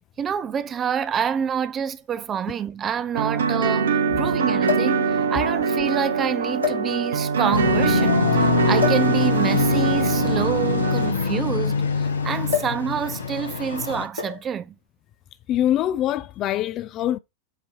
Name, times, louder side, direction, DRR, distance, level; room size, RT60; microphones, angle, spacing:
voice 1, 0.2-14.7, right 8 dB, 25° right, 0.5 m, -27 dB
sound 1, 0.9-1.0 2.1-2.2 2.4-2.5 4.6-5.0 5.9-6.0 6.6-7.3 8.8-9.1 10.2-11.9 12.5-12.9 13.1-13.4 14.2-14.5 15.5-15.8, left 6 dB, 90° left, 3.5 m, -29 dB
sound 2, 3.1-11.1, right 5 dB, 65° right, 0.7 m, -23 dB
sound 3, 7.5-14.1, left 5 dB, 70° left, 0.9 m, -24 dB
voice 2, 15.5-17.2, left 12 dB, 35° left, 0.4 m, -23 dB
8.0 x 2.8 x 4.4 m
figure-of-eight pair, 90°, 0 cm